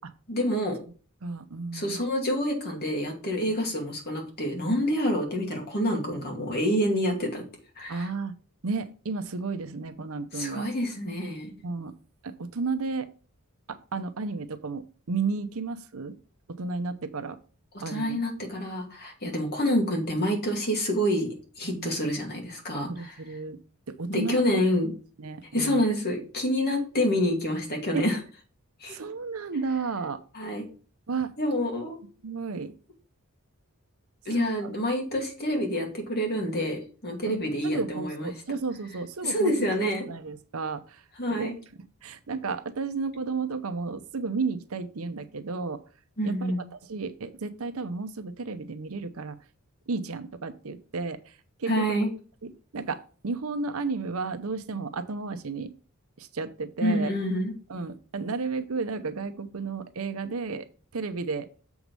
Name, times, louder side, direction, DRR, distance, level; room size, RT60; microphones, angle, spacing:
voice 1, 0.3-0.8 1.7-7.4 7.8-8.1 10.3-11.5 17.9-23.1 24.1-24.9 25.5-28.2 28.8-29.0 30.3-30.7 31.4-32.0 34.3-38.3 39.2-40.1 41.2-41.6 46.2-46.6 51.7-52.1 56.8-57.5, equal, 45° left, 1 dB, 2.4 m, -27 dB
voice 2, 1.2-2.0 7.9-8.3 8.6-10.7 11.6-11.9 12.2-13.1 13.7-16.1 16.6-17.4 17.8-18.2 21.6-21.9 22.9-23.6 23.9-24.6 25.2-25.8 27.9-28.1 28.9-30.2 31.1-31.3 32.2-32.7 34.4-34.7 37.3-39.5 39.8-41.0 41.3-41.5 42.0-45.8 46.2-46.5 46.9-49.4 49.9-52.0 52.4-55.7 56.2-57.1 57.7-61.5, right 4 dB, 70° right, 10 dB, 0.7 m, -33 dB
7.2 x 4.8 x 5.3 m, 0.39 s
head